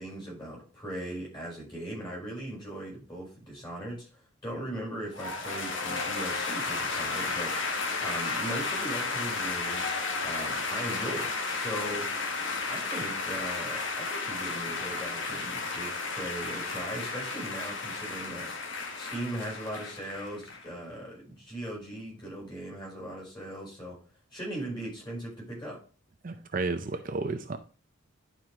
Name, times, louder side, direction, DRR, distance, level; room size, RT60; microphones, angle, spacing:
voice 1, 0.0-12.1 12.7-18.5 18.9-24.0 24.3-25.8, right 1 dB, 20° left, 4.9 m, -39 dB
sound 1, 5.1-20.7, left 4 dB, 65° left, 1.3 m, -33 dB
voice 2, 26.2-27.6, right 3 dB, 40° right, 0.5 m, -32 dB
11.0 x 4.6 x 3.6 m
head